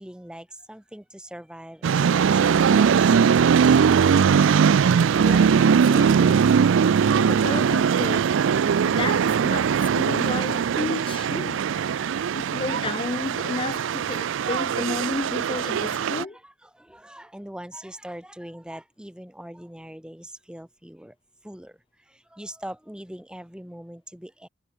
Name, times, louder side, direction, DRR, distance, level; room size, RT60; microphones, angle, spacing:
voice 1, 0.0-4.1 16.3-21.1 21.4-24.5, right 1 dB, 5° right, 0.9 m, -43 dB
sound 1, 1.8-16.2, right 7 dB, 70° right, 0.4 m, -20 dB
voice 2, 5.1-6.5 7.1-8.3 8.8-11.6 12.3-16.4, left 3 dB, 25° left, 0.4 m, -32 dB
head